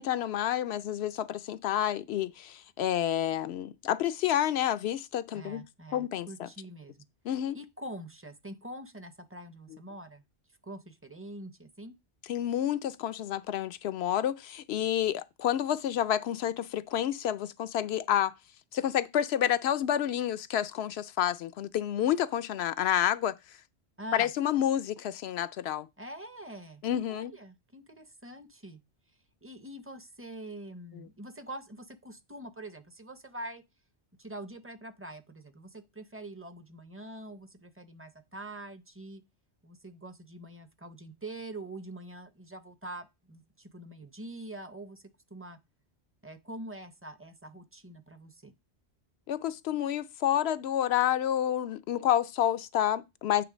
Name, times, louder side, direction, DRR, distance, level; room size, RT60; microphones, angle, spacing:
voice 1, 0.0-5.6 5.9-6.5 7.3-7.6 12.3-18.3 18.7-23.3 24.1-25.9 26.8-27.3 30.9-31.0 49.3-53.4, left 11 dB, 85° left, 0.8 m, -29 dB
voice 2, 5.3-7.0 7.5-10.2 10.6-12.0 24.0-24.3 26.0-26.8 27.1-28.8 29.4-33.6 34.2-39.2 39.6-45.6 46.2-48.5, right 1 dB, 15° right, 0.5 m, -44 dB
8.7 x 3.2 x 5.0 m
omnidirectional pair, 1.0 m